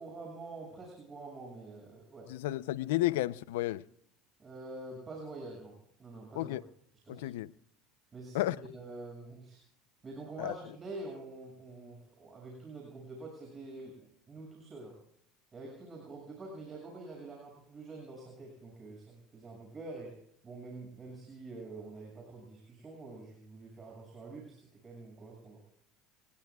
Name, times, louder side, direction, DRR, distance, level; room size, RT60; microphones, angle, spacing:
voice 1, 0.0-2.3 4.4-6.6 7.0-7.3 8.1-9.6 10.0-15.0 15.5-20.1 20.4-25.6, right 2 dB, 25° right, 6.8 m, -46 dB
voice 2, 2.3-3.8 6.4-6.6 7.1-7.5 8.3-8.6 10.4-10.5, left 16 dB, 85° left, 0.6 m, -32 dB
27.5 x 20.0 x 2.4 m
supercardioid pair, 105°, 0 cm